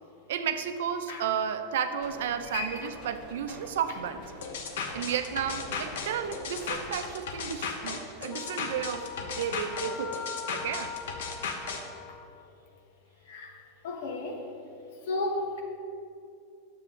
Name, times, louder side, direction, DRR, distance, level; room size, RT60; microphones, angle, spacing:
voice 1, 0.3-4.2 4.9-10.2 10.5-10.9, right 8 dB, 85° right, 8 dB, 0.6 m, -32 dB
sound 1, 2.0-7.1, left 1 dB, 50° left, 2.1 m, -47 dB
voice 2, 2.5-2.9 12.1-12.2 13.3-13.5 13.8-14.4 15.1-15.6, left 2 dB, 65° left, 2 dB, 1.3 m, -33 dB
sound 2, 4.4-11.8, left 5 dB, 90° left, 1.0 m, -36 dB
Wind instrument woodwind instrument, 8.3-12.4, left 7 dB, 25° left, 0.4 m, -42 dB
10.0 x 7.3 x 3.8 m, 2.6 s
supercardioid pair, 165°, 0 cm